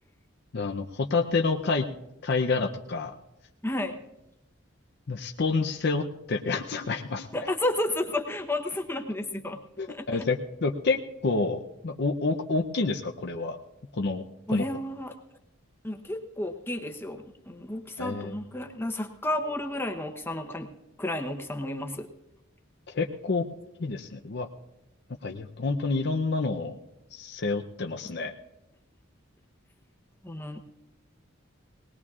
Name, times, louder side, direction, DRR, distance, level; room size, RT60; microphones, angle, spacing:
voice 1, 0.5-1.9 2.2-3.1 5.1-7.5 9.8-13.6 14.0-14.2 14.5-14.7 18.0-18.3 22.9-23.4 23.8-24.5 25.2-26.7 27.1-28.3, left 3 dB, 55° left, 3 dB, 0.6 m, -28 dB
voice 2, 3.6-4.0 7.3-9.6 9.9-10.2 14.5-15.2 15.8-20.7 21.0-22.1 30.2-30.6, left 1 dB, 10° left, 5 dB, 0.8 m, -32 dB
19.5 x 19.5 x 2.4 m, 0.93 s
head